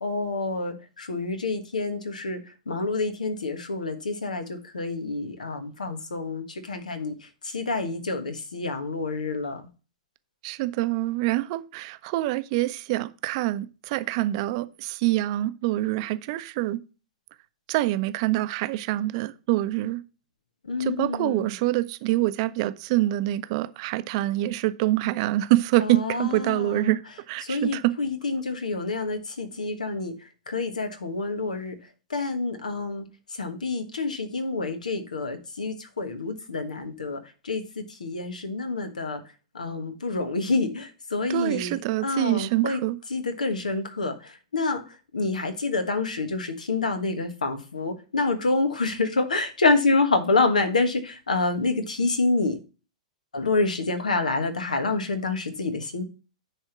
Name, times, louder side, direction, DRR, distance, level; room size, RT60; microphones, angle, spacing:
voice 1, 0.0-9.6 20.6-21.5 25.8-27.0 27.4-31.7 32.1-39.2 39.5-42.8 43.1-52.6 53.3-56.0, left 3 dB, 85° left, 1.5 m, -28 dB
voice 2, 10.4-16.8 17.7-20.0 20.8-27.0 27.3-27.9 41.3-43.0, right 16 dB, 45° right, 0.7 m, -25 dB
10.0 x 3.7 x 6.0 m
hypercardioid pair, 110°, 4 cm